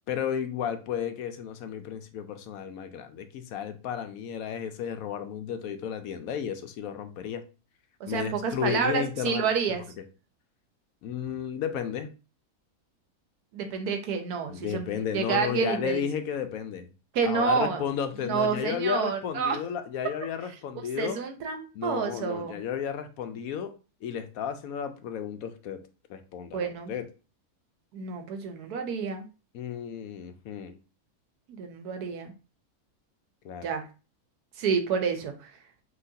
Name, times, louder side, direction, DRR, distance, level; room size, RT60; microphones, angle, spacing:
voice 1, 0.1-7.4 8.1-9.5 10.0-10.1 11.0-12.1 14.5-16.9 17.2-21.2 21.7-23.7 24.0-25.8 26.1-27.1 29.5-30.8 33.4-33.7, left 8 dB, 75° left, 1.0 m, -33 dB
voice 2, 8.0-9.8 13.5-14.9 15.1-16.0 17.1-17.8 18.2-19.6 21.0-22.6 26.5-26.9 27.9-29.2 31.5-32.3 33.6-33.9 34.6-35.5, right 6 dB, 85° right, 1.3 m, -29 dB
5.7 x 3.0 x 2.7 m
omnidirectional pair, 1.6 m